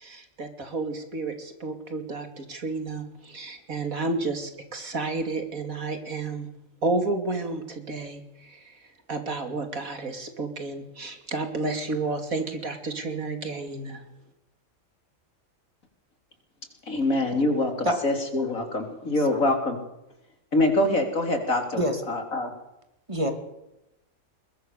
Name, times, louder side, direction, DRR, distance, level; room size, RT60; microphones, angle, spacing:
voice 1, 0.0-6.5 6.8-8.8 9.1-14.0, right 3 dB, 80° right, 6 dB, 3.3 m, -31 dB
voice 2, 16.9-19.8 20.5-21.8 22.1-22.5, left 2 dB, 75° left, 5 dB, 4.0 m, -24 dB
voice 3, 17.8-18.0 19.3-19.5 21.8-22.0 23.1-23.3, equal, 20° right, 6 dB, 2.9 m, -25 dB
22.0 x 21.0 x 6.9 m, 0.90 s
omnidirectional pair, 1.4 m